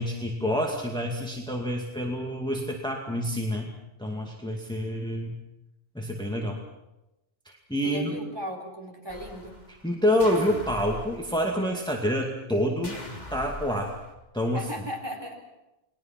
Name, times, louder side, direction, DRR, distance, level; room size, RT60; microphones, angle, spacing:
voice 1, 0.0-3.7 4.0-5.4 5.9-6.6 7.7-8.2 9.8-13.0 13.3-14.0 14.3-14.7, equal, 5° left, 0 dB, 2.3 m, -27 dB
voice 2, 7.8-9.6 14.5-15.3, equal, 25° right, 1 dB, 4.1 m, -36 dB
sound 1, 9.1-9.9 10.2-11.7 12.8-14.1, left 1 dB, 40° left, 3.5 m, -42 dB
29.5 x 21.0 x 6.0 m, 0.96 s
omnidirectional pair, 1.1 m